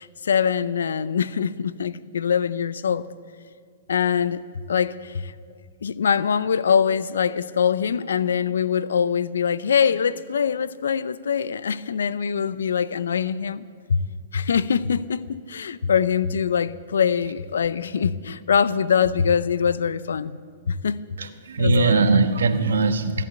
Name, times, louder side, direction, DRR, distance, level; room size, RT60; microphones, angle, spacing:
voice 1, 0.0-3.1 3.9-5.3 5.8-13.6 13.9-14.0 14.3-20.4 20.7-21.0 21.6-22.3, left 7 dB, 85° left, 0.5 m, -23 dB
voice 2, 21.2-23.2, right 4 dB, 85° right, 1.1 m, -21 dB
14.5 x 11.0 x 7.8 m
hypercardioid pair, 130°, 0 cm